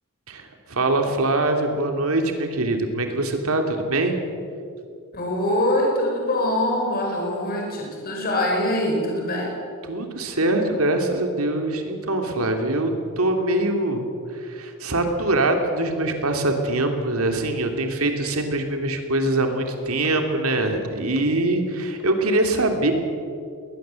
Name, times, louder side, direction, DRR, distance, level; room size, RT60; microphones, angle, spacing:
voice 1, 0.3-4.2 9.9-14.1 14.3-22.9, right 2 dB, 75° right, 4 dB, 3.0 m, -23 dB
voice 2, 5.1-9.5, left 1 dB, 45° left, -1 dB, 5.0 m, -23 dB
20.5 x 20.0 x 7.8 m, 2.4 s
head